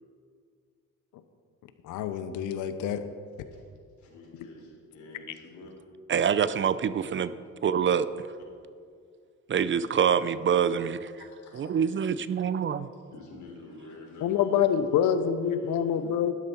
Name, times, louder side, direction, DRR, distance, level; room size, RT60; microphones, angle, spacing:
voice 1, 1.8-3.0 14.2-16.3, left 8 dB, 90° left, 11 dB, 0.8 m, -26 dB
voice 2, 4.0-5.7 10.6-10.7 11.2-11.7 13.1-16.1, left 2 dB, 70° left, -2 dB, 3.7 m, -48 dB
voice 3, 6.1-7.3 7.6-8.1 9.5-11.0 11.5-12.9, right 7 dB, 40° right, 15 dB, 0.5 m, -25 dB
12.5 x 11.5 x 4.4 m, 2.3 s
cardioid pair, 90°, 30 cm